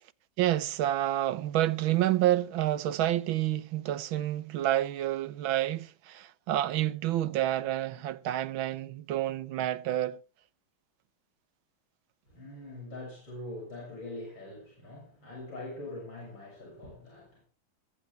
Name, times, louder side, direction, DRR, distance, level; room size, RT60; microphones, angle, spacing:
voice 1, 0.4-10.2, right 13 dB, 85° right, 1.6 m, -29 dB
voice 2, 12.3-17.4, left 2 dB, 70° left, 7.5 m, -43 dB
21.5 x 9.9 x 3.3 m
omnidirectional pair, 2.2 m